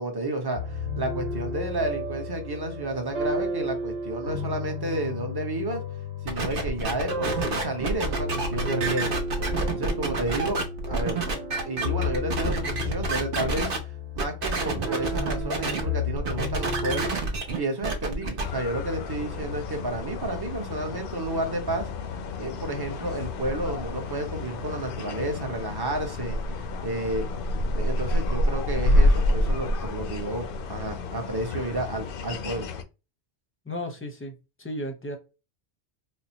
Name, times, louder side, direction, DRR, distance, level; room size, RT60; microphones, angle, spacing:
voice 1, 0.0-5.8 6.2-9.2 9.7-11.2 11.6-13.7 14.2-17.1 17.6-21.9 22.4-27.3 27.7-32.7, right 2 dB, 25° right, 4 dB, 0.8 m, -31 dB
sound 1, 0.5-17.1, left 2 dB, 80° right, 1.4 m, -33 dB
sound 2, 6.3-13.8 14.2-15.8 16.1-18.4, right 3 dB, 55° right, 1.0 m, -29 dB
sound 3, 18.4-32.8, left 1 dB, 65° left, 0.7 m, -28 dB
voice 2, 33.7-35.2, left 1 dB, 15° left, 4 dB, 0.7 m, -34 dB
4.2 x 2.1 x 2.8 m, 0.29 s
omnidirectional pair, 1.1 m